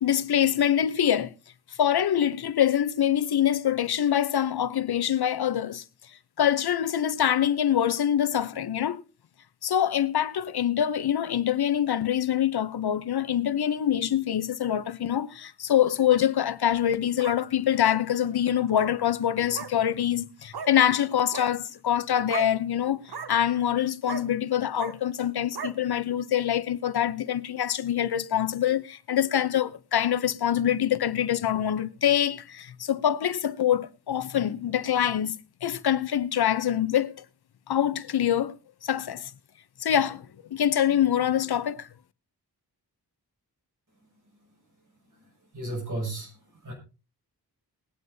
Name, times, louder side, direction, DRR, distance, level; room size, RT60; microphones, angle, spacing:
voice 1, 0.0-1.3 1.8-5.8 6.4-9.0 9.6-35.4 35.6-37.2 37.7-38.6 38.8-39.3 39.8-40.3 40.5-41.9, left 10 dB, 75° left, 0.7 m, -25 dB
sound 1, 16.7-17.4 17.8-18.0 18.7-18.9 19.5-19.7 20.5-20.7 21.2-21.5 22.3-22.5 23.0-23.3 24.1-24.2 24.8-24.9 25.5-25.7, right 6 dB, 75° right, 1.1 m, -36 dB
voice 2, 45.5-46.3 46.6-46.7, right 2 dB, 50° right, 6.9 m, -32 dB
21.0 x 9.3 x 2.7 m
wide cardioid pair, 75°, 39 cm